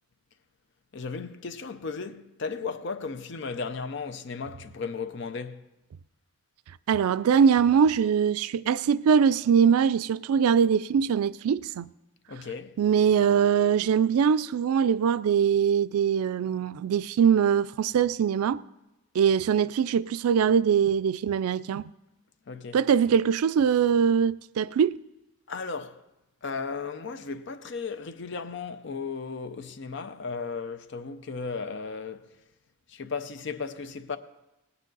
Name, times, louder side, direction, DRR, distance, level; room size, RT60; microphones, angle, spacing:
voice 1, 0.9-5.6 12.3-12.7 22.5-22.8 25.5-26.0 26.4-32.3 32.9-34.2, left 4 dB, 55° left, 0.6 m, -35 dB
voice 2, 6.9-11.9 12.8-18.6 19.1-21.8 22.7-25.0, right 7 dB, 90° right, 0.3 m, -22 dB
18.0 x 9.1 x 3.9 m
head